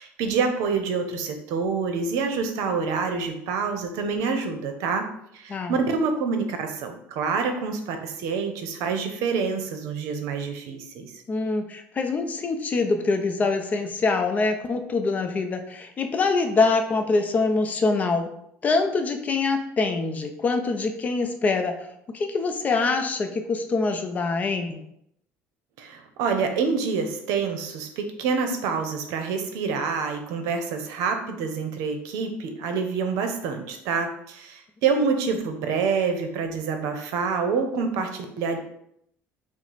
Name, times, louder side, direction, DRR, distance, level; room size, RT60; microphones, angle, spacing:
voice 1, 0.0-5.0 5.3-11.1 25.8-38.6, right 5 dB, 80° right, 6 dB, 0.7 m, -27 dB
voice 2, 11.3-18.3 18.6-21.7 22.1-24.8, left 3 dB, 30° left, 6 dB, 0.5 m, -24 dB
4.7 x 2.1 x 4.1 m, 0.74 s
cardioid pair, 135°, 5 cm